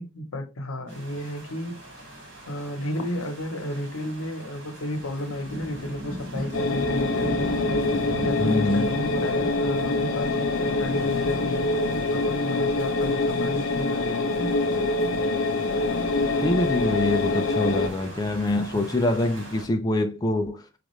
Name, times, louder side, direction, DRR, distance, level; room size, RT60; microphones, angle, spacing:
voice 1, 0.0-1.8 2.5-7.5 8.1-14.5, left 1 dB, 90° left, 0.9 m, -32 dB
sound 1, 0.9-19.6, equal, 60° right, 1.9 m, -38 dB
sound 2, 6.5-17.9, left 2 dB, 75° left, 0.6 m, -25 dB
voice 2, 8.4-9.0 16.4-20.7, left 2 dB, 20° left, 0.3 m, -25 dB
5.1 x 2.4 x 3.1 m
head